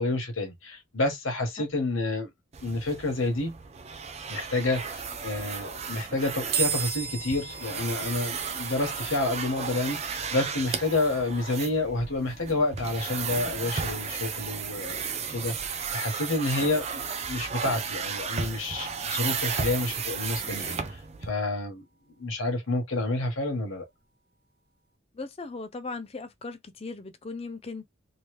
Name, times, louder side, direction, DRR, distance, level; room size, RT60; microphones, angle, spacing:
voice 1, 0.0-2.3 2.6-3.5 4.3-15.0 15.3-21.8 22.2-23.8, left 2 dB, 80° left, 1.2 m, -29 dB
sound 1, 2.5-21.3, right 6 dB, 30° right, 0.4 m, -34 dB
sound 2, 6.5-19.9, right 8 dB, 50° right, 0.8 m, -40 dB
voice 2, 25.1-27.9, left 3 dB, 30° left, 0.5 m, -38 dB
3.0 x 2.7 x 3.1 m
head